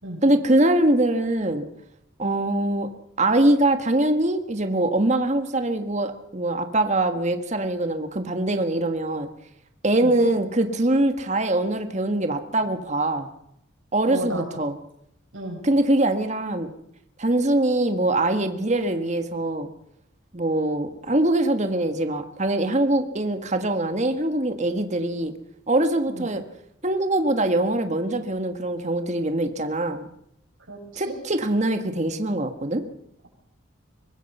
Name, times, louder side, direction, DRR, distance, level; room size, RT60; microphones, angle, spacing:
voice 1, 0.2-1.6 2.2-2.9 3.2-9.3 9.8-13.3 13.9-14.7 15.6-16.7 17.2-19.7 20.3-25.3 25.7-26.4 26.8-30.1 31.0-32.8, right 1 dB, 35° right, 7 dB, 1.6 m, -23 dB
voice 2, 14.0-14.4 15.3-15.6 26.1-26.3 30.7-31.1, right 1 dB, 85° right, 1 dB, 7.6 m, -33 dB
24.0 x 20.0 x 5.6 m, 0.75 s
head